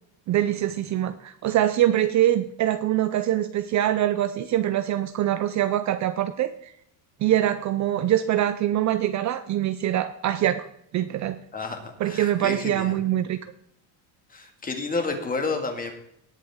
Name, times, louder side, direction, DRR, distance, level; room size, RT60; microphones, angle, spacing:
voice 1, 0.3-6.7 7.2-10.7 10.9-11.4 12.0-13.4, right 12 dB, 40° right, 12 dB, 0.5 m, -24 dB
voice 2, 11.5-13.0 14.3-15.9, left 3 dB, 20° left, 4 dB, 2.1 m, -30 dB
18.5 x 7.5 x 3.7 m, 0.74 s
cardioid pair, 130°, 44 cm